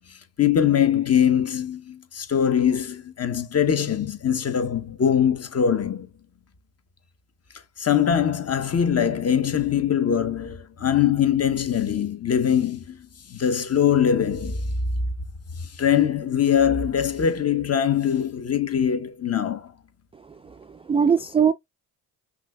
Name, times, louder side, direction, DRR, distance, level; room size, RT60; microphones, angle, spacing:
voice 1, 0.1-6.1 7.8-13.0 13.3-14.7 15.6-19.7, left 8 dB, 30° left, 0.9 m, -22 dB
voice 2, 20.4-21.5, right 6 dB, 15° right, 0.3 m, -21 dB
5.8 x 2.5 x 2.3 m
hypercardioid pair, 50°, 47 cm